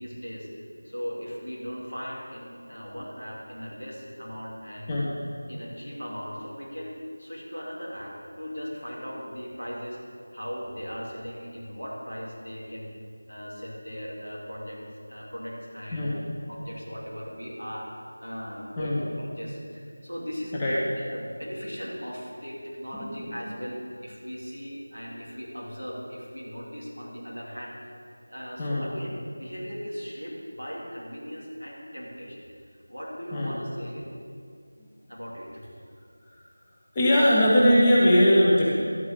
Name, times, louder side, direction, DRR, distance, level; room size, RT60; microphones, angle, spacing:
voice 1, 0.0-5.0 5.5-10.0 10.3-12.9 13.3-14.8 15.1-17.9 18.2-27.7 28.3-34.1 35.1-35.6, equal, 85° left, -4 dB, 3.1 m, -38 dB
voice 2, 23.0-23.4 28.6-28.9 33.3-33.5 36.9-38.7, equal, 15° left, -7 dB, 1.0 m, -20 dB
13.0 x 9.5 x 3.8 m, 2.3 s
figure-of-eight pair, 170°, 0 cm